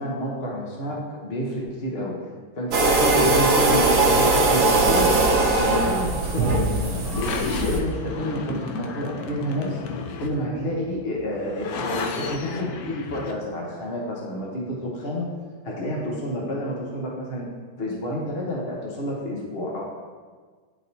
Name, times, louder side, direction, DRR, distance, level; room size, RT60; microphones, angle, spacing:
voice 1, 0.0-2.2 2.5-5.1 5.5-7.3 7.6-9.8 10.2-15.3 15.6-17.5 17.8-19.8, equal, 40° left, -3 dB, 1.0 m, -29 dB
sound 1, 2.7-7.8, right 2 dB, 55° right, 0.9 m, -20 dB
sound 2, 5.6-13.3, left 5 dB, 75° left, 0.8 m, -34 dB
11.0 x 4.1 x 2.7 m, 1.5 s
omnidirectional pair, 2.1 m